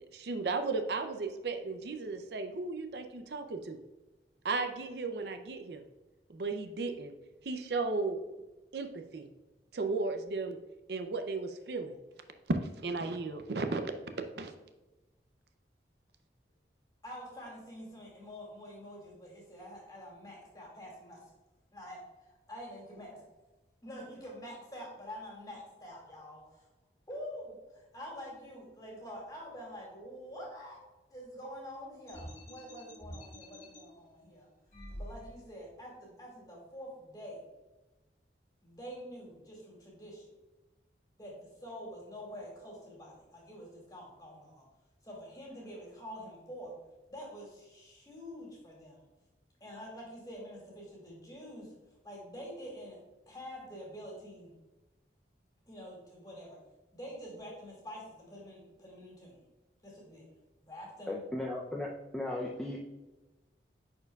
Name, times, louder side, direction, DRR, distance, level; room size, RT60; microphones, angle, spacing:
voice 1, 0.0-3.8 4.4-5.8 6.3-7.1 7.4-8.2 8.7-9.3 9.7-10.6 10.9-12.0 12.5-13.8 14.4-14.5, right 3 dB, 70° right, 7 dB, 0.6 m, -35 dB
voice 2, 17.0-21.3 21.7-23.2 23.8-26.7 27.1-30.8 31.1-34.5 34.9-37.5 38.6-40.3 41.2-44.7 45.0-46.7 47.1-49.1 49.6-51.7 52.0-53.0 53.3-54.5 55.7-56.6 56.9-59.5 59.8-60.3 60.6-61.2, equal, 20° left, -3 dB, 2.2 m, -46 dB
sound 1, 32.1-33.8 34.7-35.6, equal, 50° left, 1.9 m, -47 dB
voice 3, 61.1-62.8, left 1 dB, 5° left, -3 dB, 0.5 m, -36 dB
10.0 x 4.5 x 2.3 m, 1.1 s
head